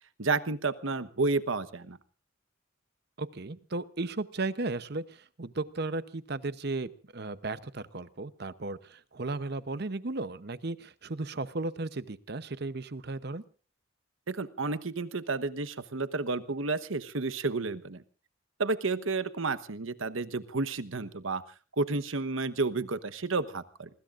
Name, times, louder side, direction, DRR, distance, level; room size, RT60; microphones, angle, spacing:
voice 1, 0.2-2.0 14.3-18.0 18.6-21.4 21.8-23.9, right 3 dB, 75° right, 13 dB, 1.1 m, -31 dB
voice 2, 3.2-13.4, right 2 dB, 50° right, 14 dB, 0.8 m, -35 dB
27.5 x 20.5 x 2.5 m, 0.38 s
head